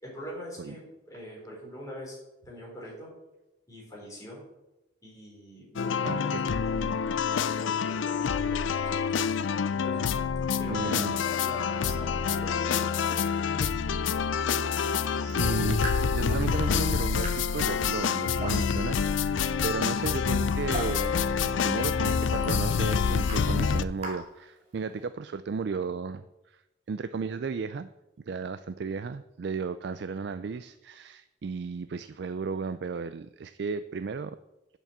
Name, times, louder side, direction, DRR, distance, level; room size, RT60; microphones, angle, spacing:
voice 1, 0.0-2.2 2.5-3.1 3.7-4.4 5.0-9.2 9.7-10.1 10.6-13.3, equal, 15° left, -4 dB, 4.2 m, -43 dB
sound 1, 5.8-23.8, left 6 dB, 80° left, 0.5 m, -27 dB
voice 2, 6.0-6.4 10.6-11.2 14.7-15.8 16.1-26.6 26.9-27.9 28.3-34.4, right 5 dB, 60° right, 12 dB, 0.4 m, -34 dB
Raindrop / Drip, 15.2-25.1, right 2 dB, 30° right, 2.8 m, -44 dB
8.2 x 7.0 x 7.3 m, 0.95 s
head